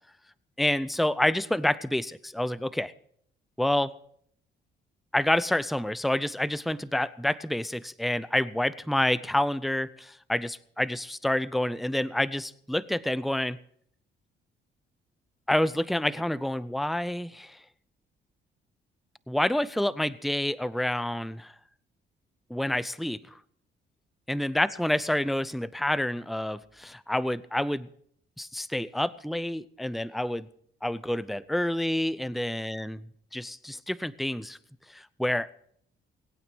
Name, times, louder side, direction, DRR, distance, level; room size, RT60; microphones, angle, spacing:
voice 1, 0.6-2.9 3.6-3.9 5.1-13.6 15.5-17.6 19.3-21.5 22.5-23.2 24.3-27.9 28.4-30.5 30.8-33.0 33.3-34.6 34.9-35.5, left 1 dB, ahead, 17 dB, 0.5 m, -28 dB
20.0 x 9.0 x 6.1 m, 0.65 s
cardioid pair, 90°, 20 cm